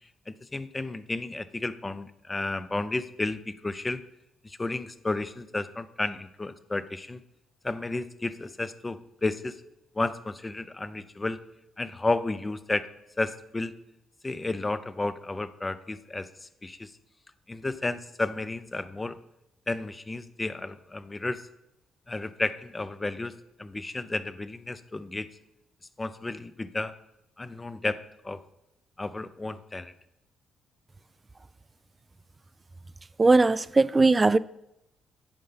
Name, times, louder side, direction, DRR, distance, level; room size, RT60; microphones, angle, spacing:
voice 1, 0.3-4.0 4.4-7.2 7.6-9.6 9.9-11.4 11.8-12.9 13.2-13.7 14.2-16.9 17.5-19.2 19.7-21.5 22.1-23.3 23.6-25.3 26.0-26.9 27.4-28.0 28.2-28.4 29.0-29.9, left 2 dB, 20° left, 0.6 m, -32 dB
voice 2, 33.2-34.4, right 3 dB, 25° right, 0.3 m, -19 dB
8.8 x 5.4 x 5.7 m
cardioid pair, 90°, 0 cm